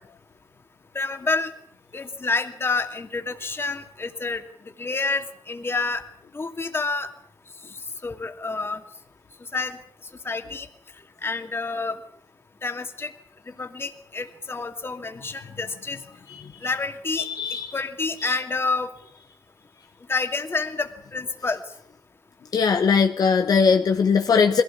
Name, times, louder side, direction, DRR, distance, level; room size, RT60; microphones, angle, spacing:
voice 1, 0.9-1.5 1.9-4.4 4.8-6.0 6.3-7.1 8.0-8.8 9.5-9.8 10.2-10.7 11.2-12.0 12.6-13.1 13.6-16.0 16.6-17.3 17.7-18.9 20.1-21.6, left 3 dB, 35° left, 6 dB, 2.6 m, -28 dB
voice 2, 17.2-17.7 22.5-24.6, left 5 dB, 65° left, 5 dB, 1.3 m, -20 dB
21.5 x 16.5 x 8.4 m, 0.65 s
cardioid pair, 75°, 7 cm